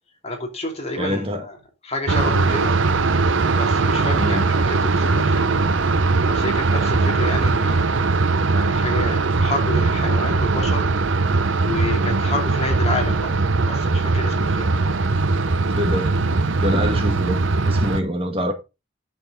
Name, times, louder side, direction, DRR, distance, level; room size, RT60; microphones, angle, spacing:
voice 1, 0.2-1.6 1.8-2.8 3.5-5.6 6.2-8.1 8.5-10.9 11.6-13.3 13.7-15.0, left 1 dB, 30° left, 2.7 m, -29 dB
voice 2, 1.0-1.4 4.2-4.4 15.8-16.2 16.6-18.5, equal, 30° right, 1.8 m, -25 dB
sound 1, 2.1-18.0, right 3 dB, 70° right, 0.8 m, -20 dB
8.9 x 7.0 x 3.8 m
head